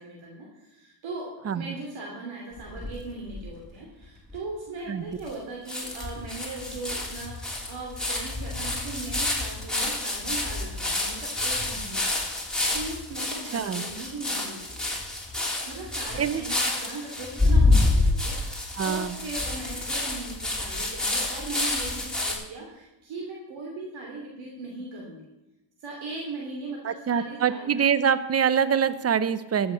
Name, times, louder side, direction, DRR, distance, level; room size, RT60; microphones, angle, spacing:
voice 1, 0.0-14.9 15.6-25.3 25.8-27.9, right 2 dB, 70° right, -1 dB, 2.8 m, -39 dB
sound 1, 2.6-3.5 4.0-4.1 4.3-4.4 5.3-5.4 5.7-22.3, left 2 dB, ahead, 3.1 m, -28 dB
voice 2, 13.5-13.8 16.2-16.4 18.8-19.2 26.8-29.7, right 7 dB, 30° right, 15 dB, 0.8 m, -24 dB
13.5 x 7.3 x 6.4 m, 0.96 s
cardioid pair, 85°, 49 cm